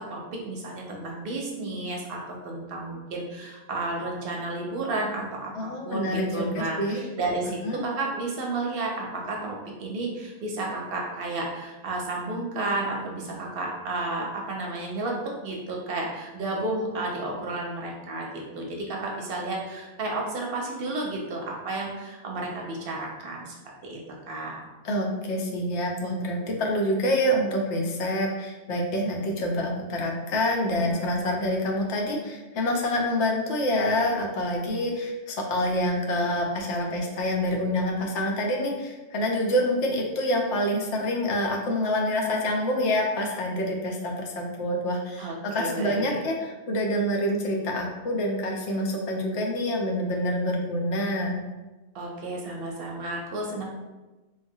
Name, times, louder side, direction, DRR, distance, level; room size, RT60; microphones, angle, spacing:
voice 1, 0.0-15.2 15.4-23.5 23.8-24.0 24.3-24.6 45.2-46.2 51.9-53.6, right 2 dB, 65° right, -1 dB, 0.7 m, -32 dB
voice 2, 5.6-7.0 7.6-7.8 24.8-51.4, left 1 dB, 80° left, 0 dB, 0.9 m, -27 dB
3.2 x 2.1 x 2.6 m, 1.1 s
omnidirectional pair, 1.2 m